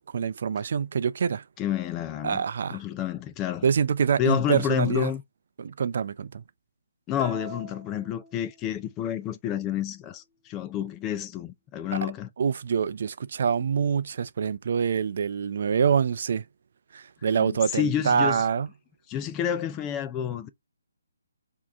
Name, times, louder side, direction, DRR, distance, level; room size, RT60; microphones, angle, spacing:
voice 1, 0.1-1.4 2.2-2.8 3.6-5.1 5.6-6.4 12.4-16.4 16.9-18.7, right 7 dB, 50° right, 0.5 m, -25 dB
voice 2, 1.6-2.4 2.7-3.7 4.2-5.2 7.1-12.3 17.3-18.4 19.1-20.5, left 10 dB, 15° left, 0.4 m, -29 dB
sound 1, 7.2-9.0, right 2 dB, 5° right, 1.1 m, -43 dB
4.8 x 2.9 x 3.4 m
hypercardioid pair, 160°, 0 cm